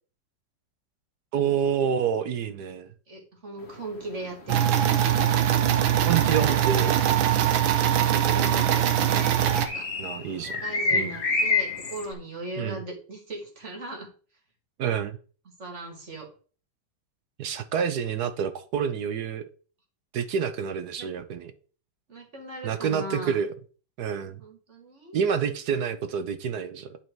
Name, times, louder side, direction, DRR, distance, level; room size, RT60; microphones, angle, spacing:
voice 1, 1.3-2.9 6.1-7.0 10.0-10.6 10.9-11.2 12.6-12.8 14.8-15.2 17.4-19.4 20.1-21.5 22.6-23.5 24.0-24.4 25.1-27.0, right 7 dB, 65° right, 1.2 m, -28 dB
voice 2, 3.1-4.8 7.8-8.9 9.5-9.9 10.4-14.1 15.6-16.3 21.0-21.1 22.1-23.4 24.4-25.3, right 2 dB, 35° right, 2.3 m, -38 dB
sound 1, 3.6-12.1, left 3 dB, 35° left, 1.6 m, -31 dB
sound 2, 4.5-9.7, right 10 dB, 80° right, 1.7 m, -22 dB
11.0 x 4.4 x 4.6 m
omnidirectional pair, 2.1 m